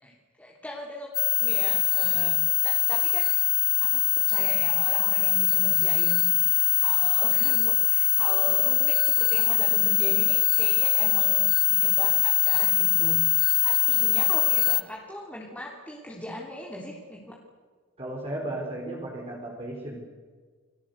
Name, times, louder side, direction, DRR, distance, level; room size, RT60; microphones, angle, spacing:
voice 1, 0.4-2.4 2.6-3.3 3.8-17.3, left 1 dB, 10° left, -3 dB, 3.4 m, -40 dB
sound 1, 1.1-14.8, left 16 dB, 55° left, 0.9 m, -22 dB
voice 2, 18.0-20.0, right 1 dB, 30° right, -3 dB, 4.5 m, -35 dB
29.5 x 20.0 x 8.1 m, 1.5 s
head